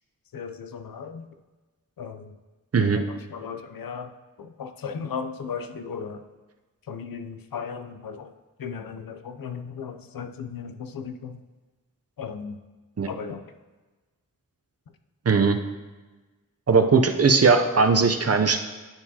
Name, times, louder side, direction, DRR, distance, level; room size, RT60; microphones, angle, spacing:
voice 1, 0.3-1.3 2.0-2.3 2.8-4.1 4.4-6.2 6.9-8.3 8.6-11.4 12.2-12.6 13.1-13.4, left 6 dB, 85° left, 8 dB, 0.5 m, -36 dB
voice 2, 15.3-15.6 16.7-18.6, right 4 dB, 45° right, 6 dB, 0.5 m, -19 dB
10.5 x 4.6 x 2.8 m, 1.2 s
wide cardioid pair, 75°, 34 cm